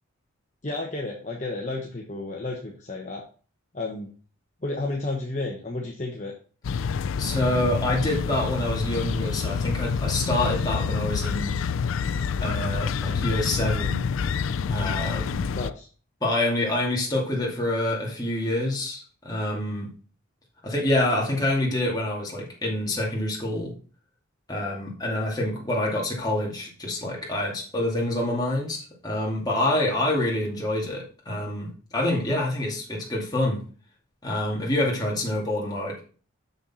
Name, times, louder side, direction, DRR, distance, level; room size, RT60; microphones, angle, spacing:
voice 1, 0.6-3.2 3.7-4.1 4.6-6.3 15.5-15.9, left 2 dB, 35° left, -1 dB, 1.1 m, -32 dB
sound 1, 6.6-15.7, left 6 dB, 65° left, 0.4 m, -27 dB
voice 2, 7.2-11.5 12.4-14.0 14.7-15.4 16.2-19.9 20.6-23.7 24.5-33.6 34.2-36.0, left 1 dB, 20° left, -3 dB, 2.3 m, -27 dB
6.6 x 6.6 x 4.2 m, 0.40 s
head